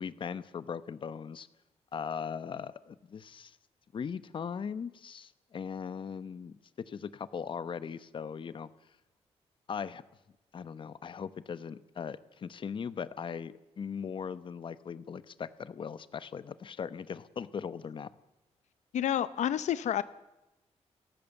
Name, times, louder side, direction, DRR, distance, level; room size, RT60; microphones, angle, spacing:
voice 1, 0.0-1.5 1.9-3.6 3.9-8.7 9.7-10.0 10.5-18.1, left 6 dB, 45° left, 15 dB, 1.0 m, -39 dB
voice 2, 18.9-20.0, left 10 dB, 85° left, 15 dB, 0.7 m, -29 dB
29.0 x 14.5 x 7.2 m, 0.97 s
wide cardioid pair, 140°, 12 cm